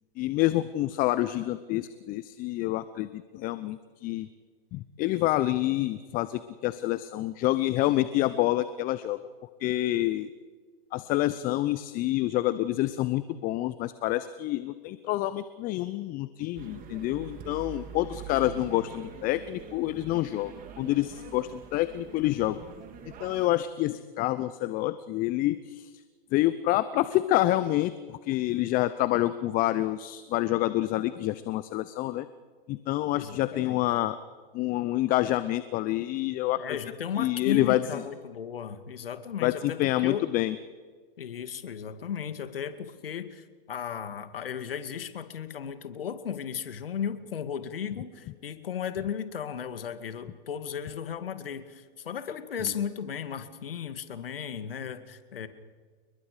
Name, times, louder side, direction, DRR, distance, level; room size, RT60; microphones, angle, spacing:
voice 1, 0.2-4.3 4.7-9.2 9.6-10.3 10.9-22.6 23.2-25.9 26.3-32.3 32.7-34.2 34.5-36.8 37.2-38.0 39.4-40.6 52.6-52.7, left 16 dB, 30° left, 14 dB, 0.8 m, -27 dB
sound 1, 16.6-23.5, right 7 dB, 30° right, 3.2 m, -44 dB
voice 2, 33.1-33.8 36.5-40.4 41.2-55.5, left 8 dB, 75° left, 10 dB, 2.3 m, -35 dB
30.0 x 21.5 x 5.1 m, 1.5 s
hypercardioid pair, 115°, 29 cm